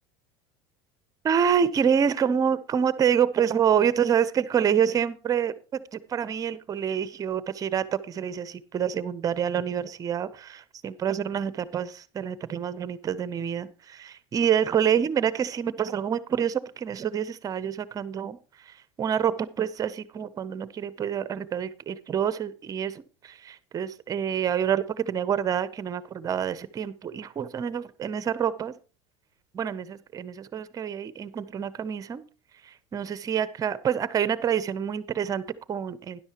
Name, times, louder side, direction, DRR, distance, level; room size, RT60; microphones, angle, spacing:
voice 1, 1.2-18.4 18.6-28.8 29.5-32.2 32.6-36.2, right 8 dB, 25° right, 16 dB, 0.7 m, -27 dB
12.5 x 11.0 x 2.9 m, 0.35 s
supercardioid pair, 145°, 14 cm